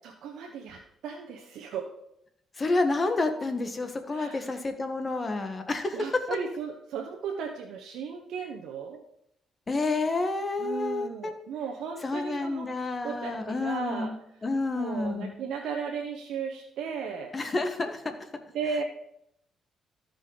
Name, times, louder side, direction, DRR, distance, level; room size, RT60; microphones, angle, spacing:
voice 1, 0.0-1.9 4.1-4.4 5.9-9.0 10.6-12.7 13.0-14.1 14.7-17.3 18.5-18.8, right 6 dB, 80° right, 1 dB, 1.0 m, -35 dB
voice 2, 2.6-6.2 9.7-11.3 12.0-15.4 17.3-18.1, left 3 dB, 30° left, 7 dB, 1.3 m, -29 dB
14.0 x 5.1 x 3.9 m, 0.77 s
cardioid pair, 90°, 0 cm